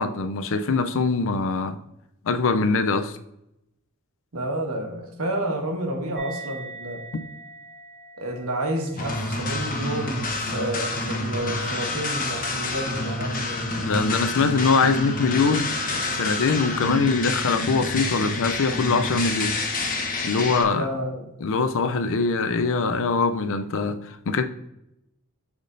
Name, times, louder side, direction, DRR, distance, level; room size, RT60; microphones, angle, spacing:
voice 1, 0.0-1.8 2.2-3.2 13.8-19.6 20.2-20.8 21.4-24.4, left 4 dB, 65° left, 0.5 m, -23 dB
voice 2, 4.3-7.0 8.2-13.9 20.7-21.3, right 1 dB, 75° right, 1.4 m, -30 dB
sound 1, 6.1-13.0, right 3 dB, 50° right, 1.5 m, -45 dB
sound 2, 9.0-20.6, left 2 dB, 40° left, 0.9 m, -28 dB
10.5 x 3.6 x 2.6 m
head